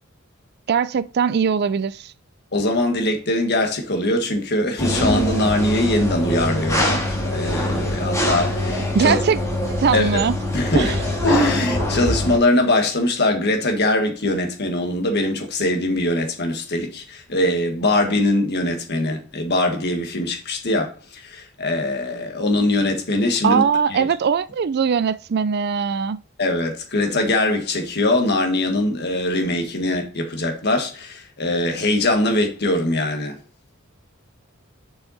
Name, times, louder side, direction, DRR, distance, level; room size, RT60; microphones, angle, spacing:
voice 1, 0.7-2.1 8.9-9.4 9.8-10.3 10.8-11.0 23.4-26.2, right 6 dB, 50° right, 0.4 m, -20 dB
voice 2, 2.5-9.2 9.9-10.2 10.5-10.9 11.2-23.6 23.9-24.1 26.4-33.4, left 1 dB, 55° left, 1.7 m, -22 dB
sound 1, 4.8-12.4, left 1 dB, 15° left, 2.0 m, -23 dB
7.1 x 5.7 x 4.1 m
head